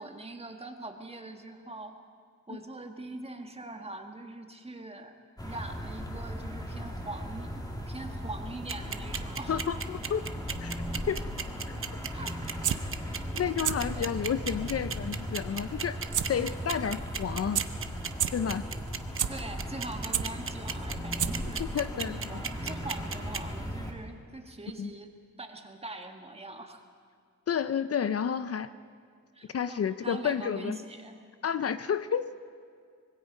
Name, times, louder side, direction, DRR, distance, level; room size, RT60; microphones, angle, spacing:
voice 1, 0.0-2.1 2.5-5.1 5.4-9.6 11.8-11.9 12.1-12.4 13.8-14.2 19.3-21.6 22.1-26.8 29.3-31.2, right 2 dB, 20° right, 4 dB, 1.6 m, -43 dB
sound 1, 5.4-23.9, equal, 10° left, 2.3 m, -37 dB
sound 2, 8.7-23.4, right 6 dB, 45° right, 0.9 m, -34 dB
voice 2, 9.5-10.3 10.6-11.2 13.3-16.0 16.3-17.6 18.3-18.6 21.6-22.2 24.8-24.9 27.5-28.7 29.5-30.8 31.4-32.4, left 7 dB, 55° left, 12 dB, 0.6 m, -30 dB
sound 3, 12.4-12.8 13.5-13.7 14.2-14.3 16.1-16.2 16.6-16.7 17.2-17.3 17.5-17.6 18.1-18.3 18.8-19.3 19.8-20.2 20.9-21.0 21.2-21.5 21.9-22.0, right 10 dB, 90° right, 0.8 m, -28 dB
25.0 x 21.5 x 5.4 m, 2.1 s
wide cardioid pair, 150°, 30 cm